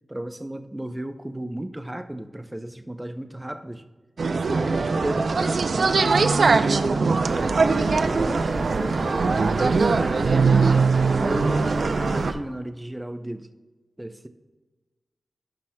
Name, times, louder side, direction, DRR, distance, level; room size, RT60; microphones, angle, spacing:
voice 1, 0.1-3.8 4.3-6.2 6.7-10.9 11.2-13.5 14.0-14.3, right 1 dB, 10° right, 8 dB, 0.5 m, -34 dB
sound 1, 4.2-12.3, right 4 dB, 60° right, 0.4 m, -21 dB
sound 2, 7.2-12.3, right 2 dB, 90° right, 1.2 m, -31 dB
17.0 x 5.9 x 2.2 m, 1.2 s
wide cardioid pair, 125°, 0 cm